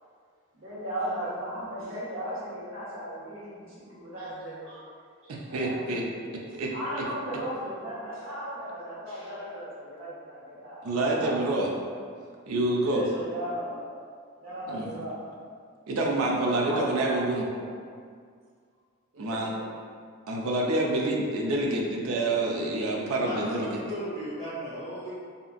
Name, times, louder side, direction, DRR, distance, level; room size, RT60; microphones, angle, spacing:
voice 1, 0.5-4.9 5.2-5.9 6.7-11.6 12.8-13.8 14.4-15.2 16.4-17.7 19.1-19.6, right 1 dB, 70° right, -8 dB, 0.9 m, -36 dB
voice 2, 5.3-6.0 6.6-7.0 10.8-11.7 12.5-13.0 14.7-15.0 15.9-17.4 19.2-19.5 20.3-23.8, right 2 dB, 85° right, -2 dB, 0.4 m, -27 dB
voice 3, 23.2-23.5 23.9-25.1, equal, 30° right, -13 dB, 1.3 m, -35 dB
2.7 x 2.4 x 2.4 m, 2.1 s
head